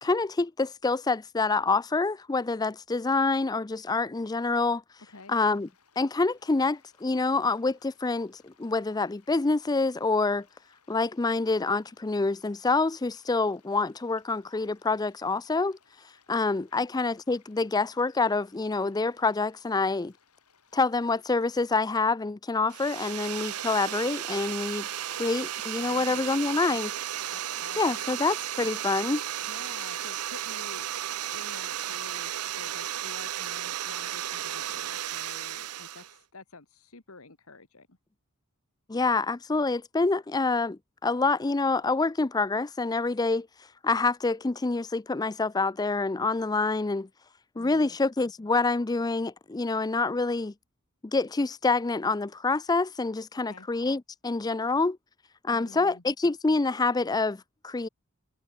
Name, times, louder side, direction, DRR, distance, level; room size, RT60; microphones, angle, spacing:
voice 1, 0.0-4.8 5.3-5.7 6.0-10.5 10.9-15.8 16.3-20.1 20.7-24.9 25.1-26.9 27.8-29.2 38.9-43.5 43.8-47.1 47.6-50.5 51.0-55.0 55.4-57.9, left 3 dB, 15° left, 0.4 m, -27 dB
sound 1, 5.1-21.9, left 6 dB, 85° left, 7.7 m, -65 dB
sound 2, 22.7-36.2, right 11 dB, 90° right, 0.8 m, -34 dB
voice 2, 25.8-26.2 27.3-28.1 29.5-30.9 31.3-38.0 47.5-48.0 53.3-53.7 55.5-56.0, left 3 dB, 65° left, 2.0 m, -49 dB
head